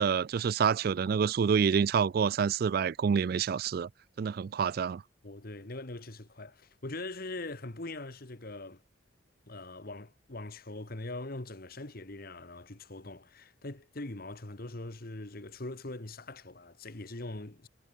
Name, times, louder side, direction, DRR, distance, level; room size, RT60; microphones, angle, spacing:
voice 1, 0.0-3.9 4.2-5.0, right 6 dB, 50° right, 0.3 m, -27 dB
voice 2, 5.2-8.8 9.5-17.7, left 2 dB, 50° left, 1.6 m, -42 dB
head